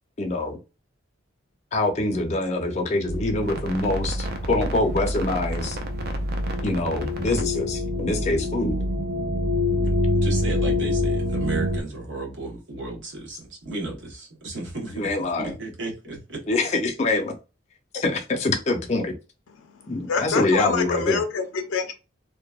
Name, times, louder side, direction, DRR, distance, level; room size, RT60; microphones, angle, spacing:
voice 1, 0.2-0.6 1.7-5.8 6.6-8.9 14.9-15.5 16.5-17.3 17.9-19.1 19.9-21.2, left 2 dB, 35° left, 0.5 m, -25 dB
sound 1, 3.1-11.8, left 1 dB, 50° right, 0.4 m, -26 dB
voice 2, 9.8-15.1 15.4-16.4, right 2 dB, 65° right, 0.9 m, -34 dB
voice 3, 19.5-21.9, left 5 dB, 85° left, 0.4 m, -27 dB
2.7 x 2.1 x 2.2 m
head